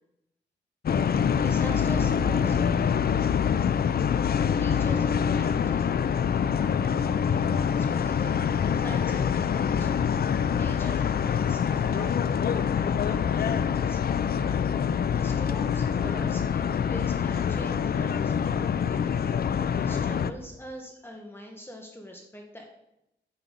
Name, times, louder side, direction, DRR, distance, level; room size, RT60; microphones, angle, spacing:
sound 1, 0.9-20.3, left 7 dB, 55° left, 0.6 m, -25 dB
voice 1, 1.3-2.8 4.6-10.1 10.5-14.0 14.3-14.8 15.2-19.0 19.7-22.6, equal, 10° left, 1 dB, 1.6 m, -43 dB
9.2 x 7.4 x 6.8 m, 0.84 s
wide cardioid pair, 100°, 19 cm